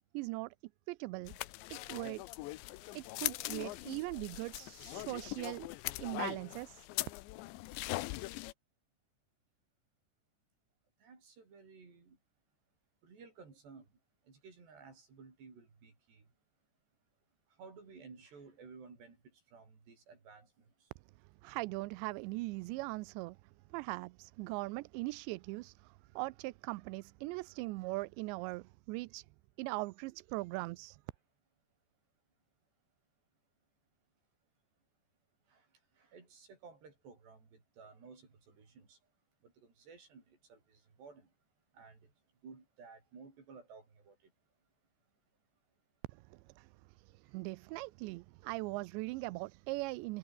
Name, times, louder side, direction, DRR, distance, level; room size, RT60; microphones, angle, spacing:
voice 1, 0.1-0.5 0.9-1.4 1.7-2.2 2.9-5.7 6.0-6.9 21.4-23.4 23.7-29.3 29.6-31.0 46.1-46.7 47.0-50.2, right 22 dB, 85° right, 2.9 m, -40 dB
sound 1, 1.3-8.5, left 19 dB, 85° left, 3.1 m, -41 dB
voice 2, 11.0-12.2 13.0-13.9 14.3-16.2 17.6-19.2 19.5-20.5 35.5-35.6 36.0-39.0 39.6-41.3 41.7-42.0 42.4-44.1, right 5 dB, 70° right, 9.2 m, -55 dB
omnidirectional pair, 5.1 m